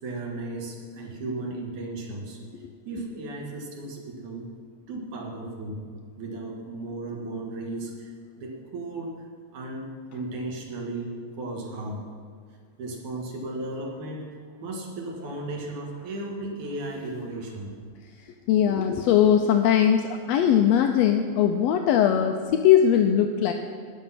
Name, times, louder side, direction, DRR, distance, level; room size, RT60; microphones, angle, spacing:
voice 1, 0.0-2.4 2.9-4.5 4.9-5.9 6.2-8.1 8.4-9.2 9.5-12.1 12.8-17.7, right 2 dB, 80° right, -1 dB, 3.2 m, -35 dB
voice 2, 18.5-23.5, left 9 dB, 80° left, 5 dB, 1.6 m, -20 dB
19.0 x 6.3 x 5.8 m, 2.1 s
omnidirectional pair, 3.4 m